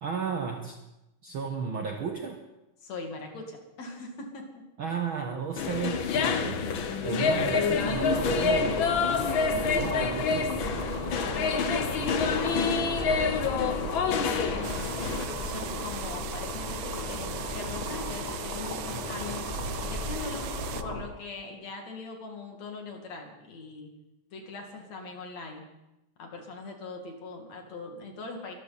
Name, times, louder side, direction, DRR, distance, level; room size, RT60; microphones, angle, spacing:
voice 1, 0.0-0.8 1.2-2.4 4.8-8.8 9.5-10.6, right 6 dB, 60° right, 3 dB, 1.4 m, -33 dB
voice 2, 2.8-4.4 9.7-10.1 11.4-12.6 13.1-19.5 19.8-20.5 20.8-23.9 24.3-25.7 26.2-28.5, left 3 dB, 55° left, 2 dB, 3.4 m, -41 dB
sound 1, 5.6-15.2, left 5 dB, 75° left, 1.1 m, -27 dB
sound 2, 7.9-21.0, left 1 dB, 15° left, 2.2 m, -35 dB
sound 3, 14.6-20.8, right 12 dB, 85° right, 1.4 m, -40 dB
23.5 x 13.5 x 4.2 m, 0.94 s
omnidirectional pair, 3.7 m